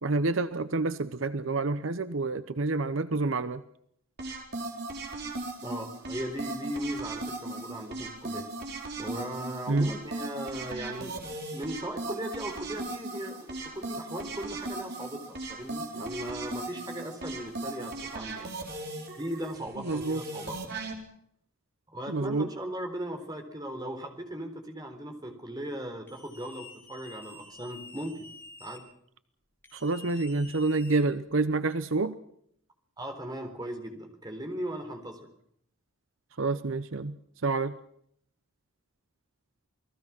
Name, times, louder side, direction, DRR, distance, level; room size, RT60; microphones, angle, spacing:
voice 1, 0.0-3.6 9.7-9.9 19.8-20.2 22.1-22.5 29.7-32.2 36.4-37.2 37.4-37.8, right 3 dB, 70° right, 12 dB, 0.9 m, -28 dB
sound 1, 4.2-20.9, right 2 dB, 50° right, 4.5 m, -38 dB
voice 2, 5.6-8.5 9.0-11.2 11.5-18.5 19.2-20.7 21.9-28.2 28.6-28.9 33.0-35.3, right 1 dB, 20° right, 5 dB, 3.9 m, -38 dB
sound 2, 26.1-28.8 29.6-31.4, left 3 dB, 10° left, 5.7 m, -49 dB
29.0 x 20.0 x 6.0 m, 0.71 s
head